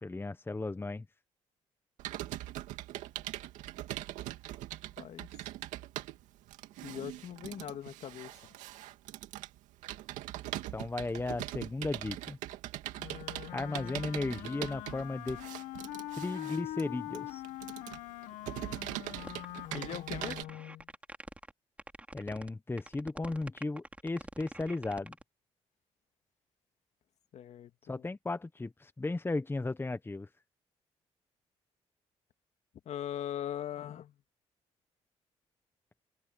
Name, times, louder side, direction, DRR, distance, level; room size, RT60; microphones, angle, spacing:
voice 1, 0.0-1.0 10.7-12.4 13.5-15.4 16.2-17.4 22.1-25.1 27.9-30.3, left 2 dB, 20° left, 1.3 m, -35 dB
Computer keyboard, 2.0-20.4, right 15 dB, 85° right, 2.4 m, -42 dB
voice 2, 5.0-5.3 6.8-8.5 19.7-20.5 27.3-28.1 32.9-34.2, left 10 dB, 65° left, 2.3 m, -40 dB
Wind instrument woodwind instrument, 13.0-20.8, left 15 dB, 85° left, 1.4 m, -43 dB
sound 1, 19.2-19.5 19.7-19.8 20.2-21.5 21.8-22.5 22.8-25.2, right 1 dB, 10° right, 4.1 m, -45 dB
supercardioid pair, 70°, 12 cm